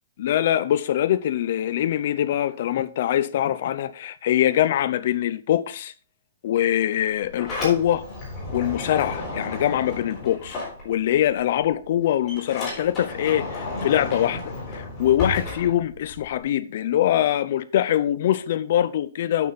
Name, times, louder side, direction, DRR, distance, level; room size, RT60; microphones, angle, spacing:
voice 1, 0.2-5.9 6.4-8.0 8.5-10.6 10.8-13.5 13.8-14.4 14.7-19.5, left 11 dB, 40° left, 0.6 m, -23 dB
Sliding door, 7.0-11.3 11.6-16.4, left 2 dB, 15° left, 3.9 m, -33 dB
8.5 x 8.4 x 4.0 m
hypercardioid pair, 180°, 0 cm